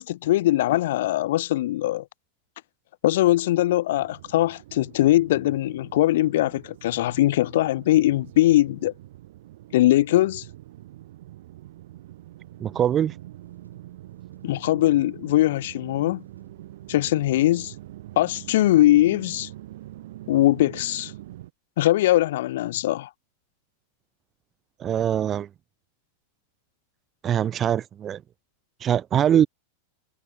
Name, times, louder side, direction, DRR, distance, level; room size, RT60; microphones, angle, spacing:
voice 1, 0.0-2.0 3.0-8.9 9.7-10.4 14.4-16.2 16.9-17.7 18.2-19.5 20.3-21.1 21.8-23.1, left 15 dB, 55° left, 0.6 m, -21 dB
sound 1, 3.9-21.5, right 15 dB, 55° right, 1.7 m, -44 dB
voice 2, 12.6-13.1 24.8-25.5 27.2-28.2 28.8-29.5, right 10 dB, 25° right, 0.4 m, -22 dB
sound 2, 12.9-18.0, right 2 dB, 80° right, 6.5 m, -60 dB
figure-of-eight pair, 90°, 0 cm